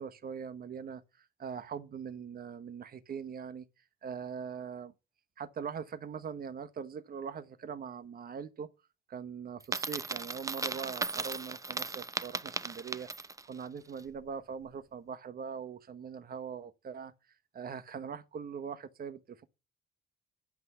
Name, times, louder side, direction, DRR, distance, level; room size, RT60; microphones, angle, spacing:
voice 1, 0.0-3.6 4.0-4.9 5.4-8.7 9.1-17.1 17.5-19.4, right 6 dB, 50° right, 1.1 m, -42 dB
Coin (dropping), 9.6-13.5, right 3 dB, 15° right, 0.7 m, -37 dB
10.5 x 6.0 x 8.0 m
cardioid pair, 90°, 20 cm